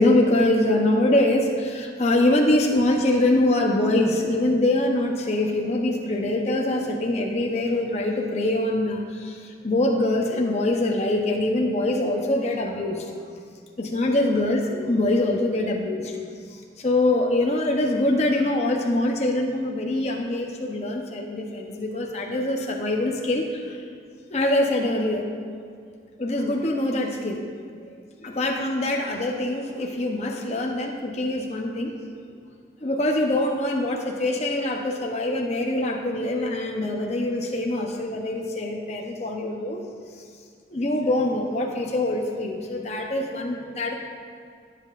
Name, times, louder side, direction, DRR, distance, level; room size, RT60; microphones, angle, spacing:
voice 1, 0.0-13.1 13.8-16.1 16.8-23.8 24.3-25.3 26.2-27.4 28.2-31.9 32.8-39.8 40.7-43.9, left 1 dB, 35° left, 1 dB, 0.7 m, -24 dB
16.0 x 7.5 x 2.5 m, 2.2 s
head